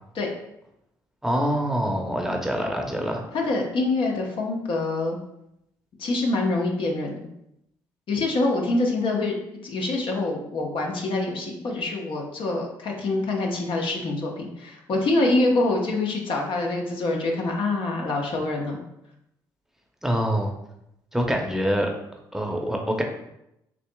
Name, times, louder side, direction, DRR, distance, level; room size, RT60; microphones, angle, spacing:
voice 1, 1.2-3.2 20.0-20.5 21.1-21.9 22.3-23.0, equal, 5° right, 2 dB, 0.8 m, -25 dB
voice 2, 3.3-5.2 6.0-7.3 8.1-9.3 9.6-18.8, left 2 dB, 60° left, 0 dB, 1.0 m, -25 dB
6.7 x 2.8 x 2.3 m, 0.82 s
hypercardioid pair, 55°, 10 cm